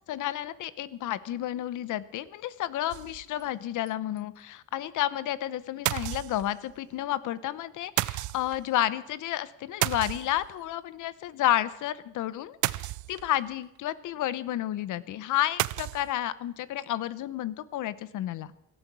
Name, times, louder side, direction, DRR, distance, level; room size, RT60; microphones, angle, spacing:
voice 1, 0.1-18.5, left 13 dB, 80° left, 16 dB, 0.9 m, -31 dB
sound 1, 2.9-3.5 3.9-4.0 4.2-4.3 5.9-6.7 8.0-8.6 9.8-10.7 12.6-13.4 15.6-16.1, right 17 dB, 80° right, 0.5 m, -31 dB
17.5 x 12.0 x 6.2 m, 0.87 s
cardioid pair, 90°, 30 cm